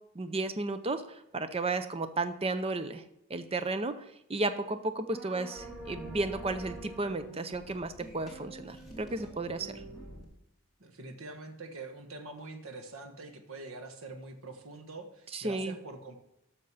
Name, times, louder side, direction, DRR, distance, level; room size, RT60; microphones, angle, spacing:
voice 1, 0.1-3.0 3.3-9.8 15.3-15.8, right 2 dB, 25° right, 10 dB, 0.6 m, -33 dB
sound 1, 5.1-10.2, right 1 dB, ahead, 2.8 m, -46 dB
voice 2, 10.8-16.2, right 3 dB, 75° right, 6 dB, 1.4 m, -44 dB
12.5 x 6.6 x 5.6 m, 0.81 s
head